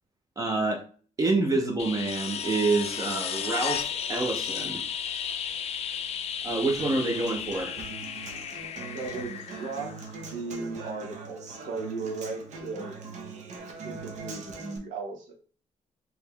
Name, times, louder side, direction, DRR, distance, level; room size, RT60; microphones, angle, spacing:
voice 1, 0.4-0.8 1.2-4.8 6.4-7.8, right 3 dB, 25° right, 3 dB, 0.6 m, -27 dB
sound 1, 1.8-10.5 12.8-12.9, left 8 dB, 55° left, 0.4 m, -34 dB
Human voice / Acoustic guitar, 6.8-14.8, right 4 dB, 65° right, 0.9 m, -41 dB
voice 2, 8.9-13.0 13.8-15.3, right 4 dB, 90° right, 2 dB, 1.1 m, -36 dB
3.9 x 2.9 x 3.3 m, 0.42 s
cardioid pair, 120°, 13 cm